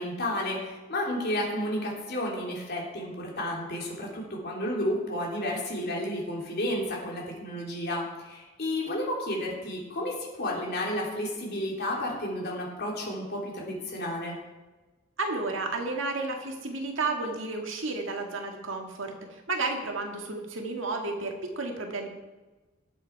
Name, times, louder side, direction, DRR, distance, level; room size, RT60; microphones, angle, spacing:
voice 1, 0.0-14.4, left 1 dB, 55° left, -2 dB, 3.4 m, -32 dB
voice 2, 15.2-22.1, right 3 dB, 75° right, 2 dB, 2.0 m, -32 dB
18.5 x 7.7 x 4.7 m, 1.2 s
head